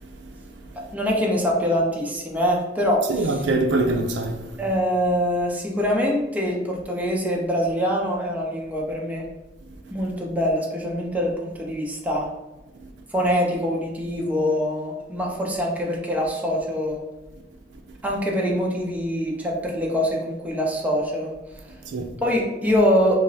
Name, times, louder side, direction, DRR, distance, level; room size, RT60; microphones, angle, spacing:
voice 1, 0.0-1.0 3.1-4.6 9.7-9.9 12.8-12.9 17.7-18.0 21.7-22.2, right 2 dB, 75° right, 0.4 m, -27 dB
voice 2, 0.9-3.0 4.6-9.2 9.9-12.3 13.1-17.0 18.0-21.3 22.2-23.2, equal, 10° right, 0.6 m, -24 dB
5.2 x 2.0 x 2.7 m
head